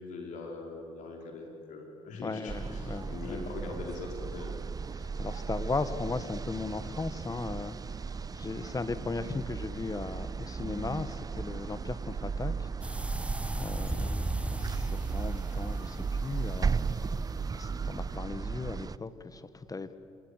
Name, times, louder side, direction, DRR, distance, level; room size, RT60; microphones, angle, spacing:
voice 1, 0.1-4.6 13.9-14.2, left 3 dB, 65° left, 1 dB, 5.0 m, -42 dB
voice 2, 2.2-3.5 4.9-7.8 8.3-20.0, left 3 dB, 25° left, 12 dB, 1.5 m, -37 dB
sound 1, 2.5-19.0, right 5 dB, 25° right, 0.6 m, -35 dB
sound 2, 12.8-18.2, right 1 dB, 10° right, 1.1 m, -37 dB
26.5 x 22.5 x 8.3 m, 2.6 s
hypercardioid pair, 55°, 14 cm